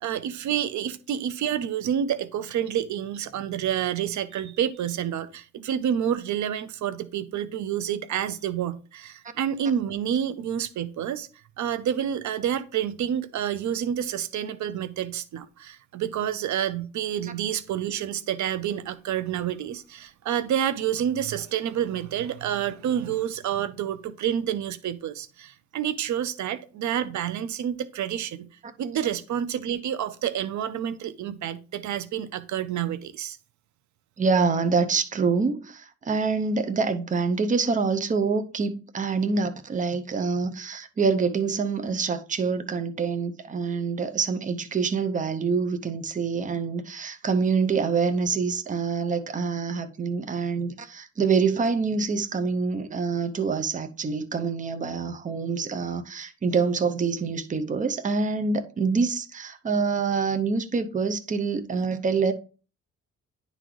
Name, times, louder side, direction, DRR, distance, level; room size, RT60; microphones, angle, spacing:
voice 1, 0.0-11.3 11.6-28.5 28.8-33.4, right 9 dB, 75° right, 0.6 m, -29 dB
voice 2, 34.2-62.3, right 5 dB, 25° right, 0.7 m, -26 dB
10.5 x 3.9 x 3.1 m
cardioid pair, 115°, 29 cm